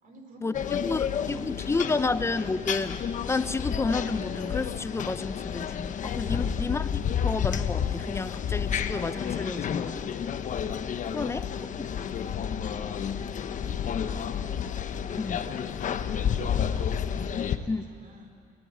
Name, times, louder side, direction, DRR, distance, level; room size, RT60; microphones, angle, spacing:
voice 1, 0.0-2.1 6.3-7.0 11.0-12.9 13.5-14.7 16.1-18.3, right 1 dB, 50° right, 4 dB, 4.3 m, -51 dB
sound 1, 0.5-17.6, left 8 dB, 50° left, 1.1 m, -30 dB
voice 2, 0.8-3.0 3.3-10.1 11.1-11.5 11.8-11.9 15.2-15.5 17.7-17.8, left 3 dB, 15° left, 13 dB, 0.7 m, -30 dB
25.0 x 16.5 x 8.8 m, 2.4 s
cardioid pair, 110°, 17 cm